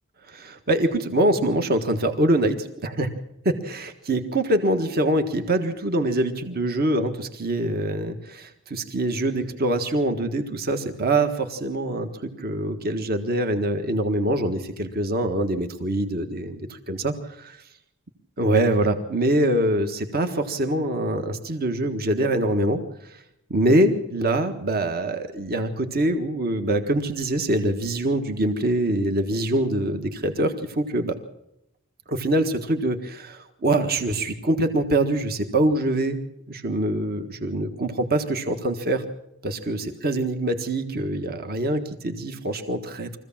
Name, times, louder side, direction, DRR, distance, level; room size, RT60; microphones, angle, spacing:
voice 1, 0.3-3.1 3.4-17.6 18.4-23.2 23.5-31.2 32.1-36.2 36.5-39.0 39.4-43.2, right 1 dB, 45° right, 6 dB, 1.6 m, -24 dB
23.5 x 15.5 x 7.3 m, 0.84 s
head